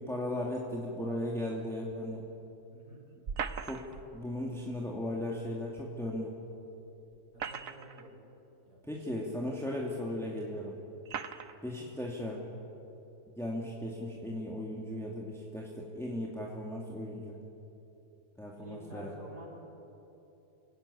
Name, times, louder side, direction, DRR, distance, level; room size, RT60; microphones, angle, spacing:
voice 1, 0.0-2.2 3.6-6.3 8.9-10.8 11.6-12.5 13.4-17.4 18.4-19.1, left 1 dB, ahead, -3 dB, 2.5 m, -37 dB
voice 2, 2.7-3.0 7.3-8.1 8.6-9.2 11.4-11.6 18.5-19.5, right 1 dB, 45° right, -5 dB, 7.4 m, -50 dB
sound 1, 3.3-4.1 5.8-5.9 7.1-8.1 8.9-9.0 10.0-10.1 11.1-11.6, right 6 dB, 65° right, 1.3 m, -38 dB
29.0 x 17.5 x 9.9 m, 2.9 s
omnidirectional pair, 1.6 m